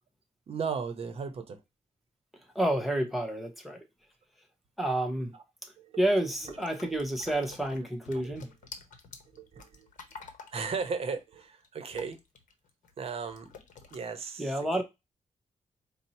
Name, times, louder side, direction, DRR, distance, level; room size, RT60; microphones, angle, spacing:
voice 1, 0.5-1.6 5.3-5.4 5.8-6.0 6.4-6.6 6.9-7.0 8.1-8.4 9.3-9.9 10.5-12.2 13.0-13.5 13.9-14.8, right 5 dB, 50° right, 0.6 m, -36 dB
voice 2, 2.5-3.9 4.8-5.3 6.0-8.5 14.4-14.8, right 1 dB, ahead, 0.7 m, -29 dB
sound 1, 6.5-12.9 13.3-14.0, left 5 dB, 80° left, 0.7 m, -49 dB
4.3 x 2.0 x 4.1 m
wide cardioid pair, 155°, 13 cm